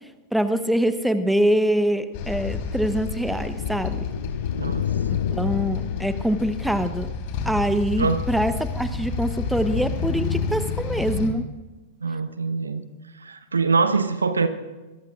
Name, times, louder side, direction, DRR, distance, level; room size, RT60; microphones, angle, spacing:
voice 1, 0.3-4.0 5.1-7.1 7.4-11.5, equal, ahead, 10 dB, 1.0 m, -24 dB
sound 1, 1.7-7.3, left 9 dB, 65° left, 0.4 m, -30 dB
sound 2, 2.1-11.3, left 5 dB, 50° left, 3.6 m, -30 dB
voice 2, 4.6-4.9 6.7-6.8 8.0-8.3 12.0-12.8 13.1-14.5, right 4 dB, 80° right, 10 dB, 1.1 m, -24 dB
24.5 x 22.5 x 2.5 m, 1.2 s
figure-of-eight pair, 95°, 0 cm